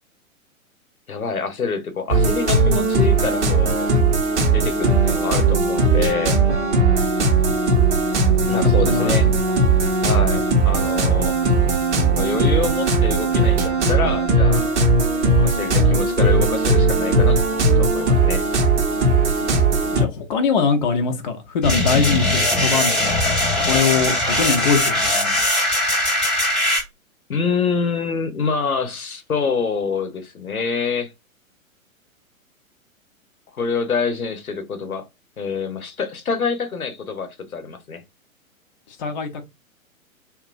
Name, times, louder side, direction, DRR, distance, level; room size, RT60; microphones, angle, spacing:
voice 1, 1.1-3.9 4.5-6.4 8.5-9.3 10.0-11.3 12.1-14.7 15.2-17.4 17.8-18.4 27.3-31.1 33.5-35.0 35.4-38.0, left 5 dB, 80° left, 0.7 m, -26 dB
sound 1, 2.1-20.1, right 3 dB, 55° right, 0.8 m, -18 dB
voice 2, 8.5-9.5 19.9-23.2 23.6-25.4 39.0-39.5, left 5 dB, 35° left, 0.5 m, -22 dB
sound 2, 21.6-26.8, left 1 dB, ahead, 0.7 m, -20 dB
2.9 x 2.3 x 2.4 m
figure-of-eight pair, 110°, 42 cm